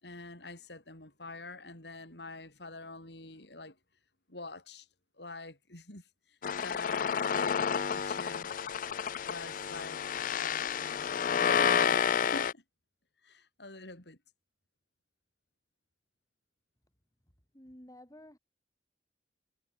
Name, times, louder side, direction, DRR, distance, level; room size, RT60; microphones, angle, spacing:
voice 1, 0.0-3.8 4.3-4.9 5.2-8.5 9.2-12.6 13.2-14.2, left 2 dB, 65° left, 5.3 m, -46 dB
sound 1, 6.4-12.5, left 7 dB, 45° left, 0.4 m, -30 dB
voice 2, 17.5-18.4, left 1 dB, 20° left, 4.7 m, -52 dB
head